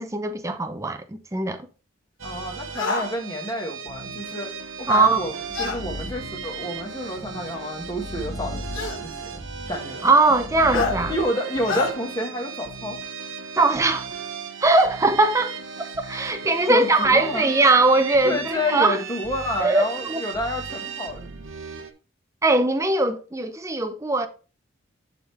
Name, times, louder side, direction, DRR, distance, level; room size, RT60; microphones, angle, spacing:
voice 1, 0.0-1.7 4.9-5.2 10.0-11.1 13.5-14.1 14.6-19.0 19.6-20.2 22.4-24.3, right 3 dB, 15° right, 0.6 m, -20 dB
voice 2, 2.2-4.5 4.8-9.4 9.7-10.1 10.7-13.0 16.7-17.5 18.2-21.4, left 1 dB, 20° left, 1.5 m, -29 dB
sound 1, 2.2-21.9, right 6 dB, 85° right, 0.9 m, -36 dB
sound 2, 2.7-3.1 5.5-5.8 7.1-7.2 8.7-9.0 10.7-11.0 11.7-11.9, left 4 dB, 80° left, 1.3 m, -26 dB
sound 3, 4.8-11.2, left 2 dB, 60° left, 1.8 m, -38 dB
10.5 x 3.7 x 3.3 m
head